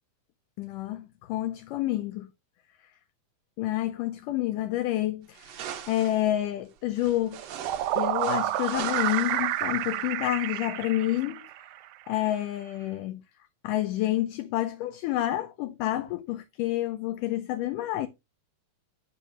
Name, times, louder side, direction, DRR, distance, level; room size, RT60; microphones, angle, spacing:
voice 1, 0.6-2.3 3.6-5.6 5.9-7.4 7.9-11.4 12.1-13.2 13.6-18.1, left 14 dB, 75° left, 2.1 m, -29 dB
sound 1, 5.3-6.3 7.0-10.0, right 9 dB, 65° right, 1.7 m, -42 dB
sound 2, 7.3-11.8, right 14 dB, 85° right, 2.4 m, -29 dB
10.0 x 3.4 x 6.1 m
omnidirectional pair, 4.1 m